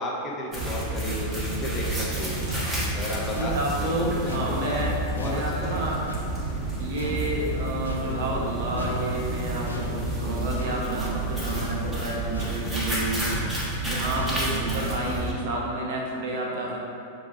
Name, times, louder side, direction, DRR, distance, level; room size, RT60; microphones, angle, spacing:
voice 1, 0.0-2.4 2.9-4.8 5.1-5.8, left 1 dB, 20° left, -4 dB, 0.7 m, -33 dB
sound 1, 0.5-15.3, right 1 dB, 10° right, 0.8 m, -30 dB
sound 2, 2.5-6.7 7.0-8.5 8.8-15.2, left 2 dB, 75° left, 0.4 m, -38 dB
voice 2, 3.4-6.0 6.8-13.2 13.8-16.8, right 2 dB, 55° right, -2 dB, 0.6 m, -30 dB
6.0 x 2.3 x 2.3 m, 2.6 s
figure-of-eight pair, 90°, 0 cm